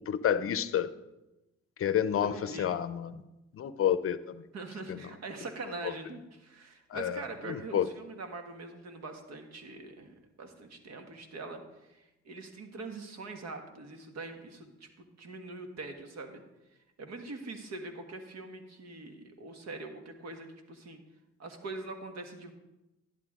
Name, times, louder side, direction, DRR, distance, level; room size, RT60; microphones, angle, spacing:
voice 1, 0.1-0.9 1.8-2.3 2.6-3.1 3.5-4.4 4.9-5.0 6.9-7.2 7.5-7.9, left 9 dB, 45° left, 14 dB, 0.6 m, -29 dB
voice 2, 2.2-2.7 4.5-11.6 11.9-16.4 17.0-21.0 21.4-22.5, right 3 dB, 60° right, 5 dB, 1.5 m, -43 dB
11.5 x 11.0 x 3.7 m, 0.99 s
cardioid pair, 90°, 30 cm